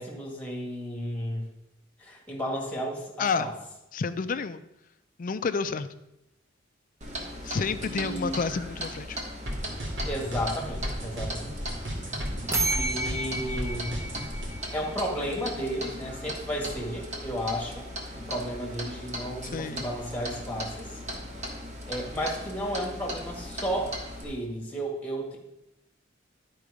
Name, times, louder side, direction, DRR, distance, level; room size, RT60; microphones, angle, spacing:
voice 1, 0.0-1.5 2.0-3.5 7.8-8.4 10.1-11.5 12.7-14.0 14.7-21.0 21.9-24.0 24.2-25.4, equal, 10° left, -1 dB, 2.0 m, -33 dB
voice 2, 3.9-4.6 5.2-5.9 7.4-9.2 19.4-19.8, left 5 dB, 45° left, 12 dB, 0.4 m, -29 dB
Clock, 7.0-24.2, equal, 40° right, 1.4 m, -38 dB
Drum and Bass Beat, 9.5-14.5, equal, 75° right, 2.4 m, -34 dB
sound 1, 12.5-15.3, right 2 dB, 15° right, 0.9 m, -31 dB
11.0 x 4.7 x 5.1 m, 0.89 s
head